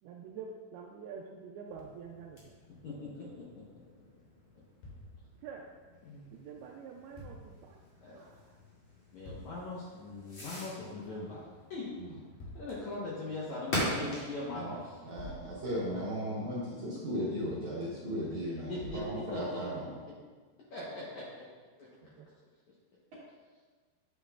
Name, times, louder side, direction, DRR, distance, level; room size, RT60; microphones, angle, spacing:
voice 1, 0.0-2.5 5.4-5.7 6.3-7.8 8.1-8.6 19.7-19.9 22.2-22.3, right 6 dB, 85° right, 1 dB, 2.2 m, -47 dB
Fireworks, 1.6-16.2, left 1 dB, 35° left, 2.7 m, -44 dB
voice 2, 2.8-3.6 6.0-6.4 8.0-8.2 9.1-11.9 12.5-14.9 18.7-19.8 20.7-21.5 21.8-21.9, left 2 dB, 80° left, -6 dB, 1.6 m, -41 dB
sound 1, 4.8-5.6 7.2-7.7 9.2-9.8 12.4-13.0 15.2-16.6 18.8-19.7, equal, 65° left, 3.9 m, -49 dB
voice 3, 15.0-19.9, equal, 65° right, -7 dB, 2.0 m, -36 dB
9.2 x 9.0 x 2.4 m, 1.5 s
omnidirectional pair, 5.0 m